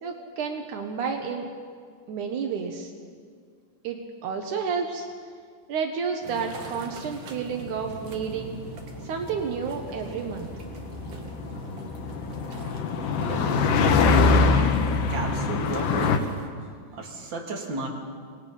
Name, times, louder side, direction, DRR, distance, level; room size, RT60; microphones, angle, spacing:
voice 1, 0.0-1.5 2.1-2.9 3.8-5.1 5.7-8.6 9.0-10.5, right 6 dB, 85° right, 4 dB, 1.7 m, -30 dB
sound 1, 6.2-16.5, right 4 dB, 55° right, 2.9 m, -41 dB
sound 2, 7.7-16.2, left 4 dB, 90° left, 1.8 m, -24 dB
voice 2, 13.2-13.6 14.1-14.4 15.1-16.3 16.9-17.9, right 3 dB, 35° right, 0 dB, 2.3 m, -34 dB
27.0 x 19.5 x 5.5 m, 2.1 s
omnidirectional pair, 5.4 m